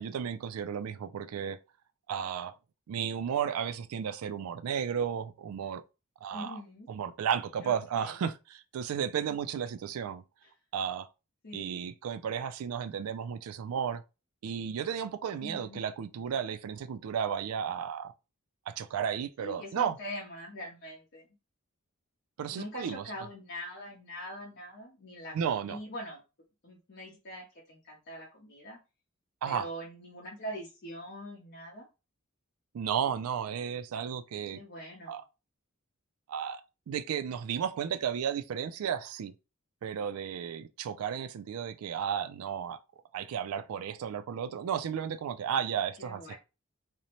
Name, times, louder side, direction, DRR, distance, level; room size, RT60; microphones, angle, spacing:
voice 1, 0.0-1.6 2.1-2.5 2.9-5.8 6.2-6.6 6.9-10.2 10.7-11.1 11.5-14.0 14.4-18.1 18.7-20.0 22.4-23.0 25.3-25.8 29.4-29.7 32.7-34.6 35.1-35.2 36.3-39.3 39.8-42.8 43.1-46.3, right 8 dB, 80° right, 0.3 m, -33 dB
voice 2, 6.3-6.9 7.6-7.8 8.0-8.2 10.4-10.5 11.4-11.8 15.4-15.8 19.4-21.3 22.5-25.3 25.6-26.2 26.6-28.8 29.4-31.9 34.5-35.2 46.0-46.4, equal, 55° left, 0.7 m, -43 dB
2.6 x 2.1 x 2.9 m
head